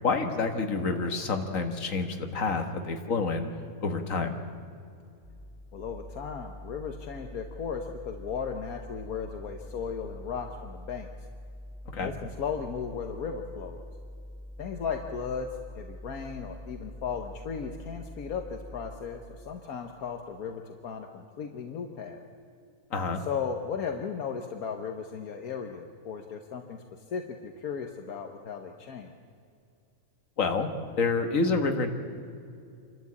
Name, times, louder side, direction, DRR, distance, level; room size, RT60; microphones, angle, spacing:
voice 1, 0.0-3.5 3.8-4.4 11.9-12.1 22.9-23.2 30.4-30.7 30.9-31.9, left 4 dB, 60° left, 6 dB, 1.9 m, -28 dB
sound 1, 5.2-19.0, left 1 dB, 30° right, 5.7 m, -45 dB
voice 2, 5.7-11.1 11.9-13.8 14.6-15.5 15.7-22.2 23.2-26.8 27.1-29.1, left 6 dB, 75° left, 5 dB, 1.5 m, -36 dB
27.5 x 12.5 x 8.4 m, 2.5 s
omnidirectional pair, 1.5 m